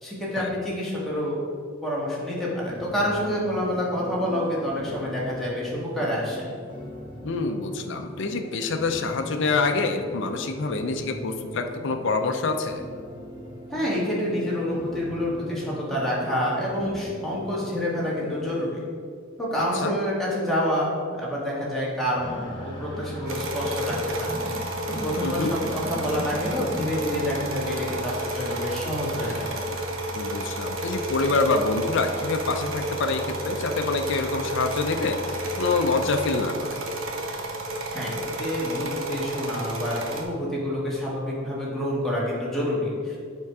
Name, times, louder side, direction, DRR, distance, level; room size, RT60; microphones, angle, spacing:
voice 1, 0.0-1.4 1.8-6.5 13.7-18.8 19.4-24.6 24.9-29.5 37.9-43.2, equal, ahead, -7 dB, 1.8 m, -28 dB
sound 1, 2.7-18.7, equal, 25° right, 1.1 m, -41 dB
voice 2, 7.2-12.9 19.8-19.9 25.2-25.5 30.1-36.8, left 3 dB, 65° left, 5 dB, 0.5 m, -26 dB
sound 2, 22.2-36.1, equal, 25° left, 1.3 m, -37 dB
sound 3, 23.3-40.2, right 1 dB, 80° right, 1.0 m, -32 dB
7.3 x 4.6 x 4.7 m, 2.1 s
head